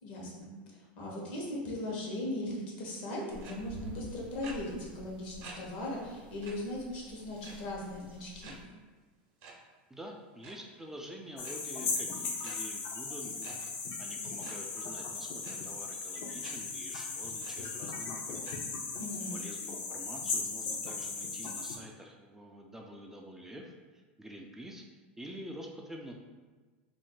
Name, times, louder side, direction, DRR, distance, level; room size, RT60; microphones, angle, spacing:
voice 1, 0.0-8.6 19.0-19.4, left 1 dB, 70° left, -3 dB, 1.0 m, -38 dB
sound 1, 3.3-8.6, equal, 90° right, 0.4 m, -50 dB
sound 2, 3.4-3.5 4.4-4.5 5.4-5.5 5.9-6.0 6.4-6.5 7.4-7.8 8.4-8.5 9.4-9.5 10.3-10.5 11.4-11.5 12.4-12.5 13.4-13.5 14.4-14.5 15.4-15.5 16.4-16.5 17.0-17.1 17.4-17.5 18.4-18.5, right 4 dB, 55° right, 0.7 m, -48 dB
voice 2, 9.9-13.6 14.0-18.5 19.3-24.8 25.2-26.1, equal, 10° right, 0 dB, 0.3 m, -47 dB
sound 3, 11.4-21.8, left 4 dB, 50° left, 0.5 m, -37 dB
2.5 x 2.1 x 3.7 m, 1.3 s
hypercardioid pair, 110°, 5 cm